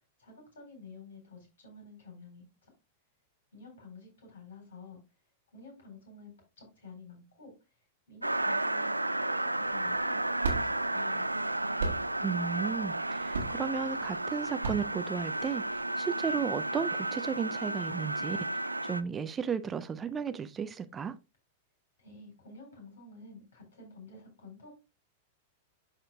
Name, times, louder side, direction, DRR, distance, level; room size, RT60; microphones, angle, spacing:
voice 1, 0.2-2.7 3.5-5.0 5.5-7.5 8.1-11.4 22.0-24.7, left 3 dB, 65° left, 4.2 m, -51 dB
The Dish, 8.2-19.0, right 2 dB, 90° right, 0.3 m, -33 dB
sound 1, 9.6-15.8, right 4 dB, 70° right, 1.2 m, -37 dB
voice 2, 12.2-18.4 18.8-21.1, right 6 dB, 20° right, 0.4 m, -34 dB
11.5 x 4.3 x 2.3 m
figure-of-eight pair, 95°, 0 cm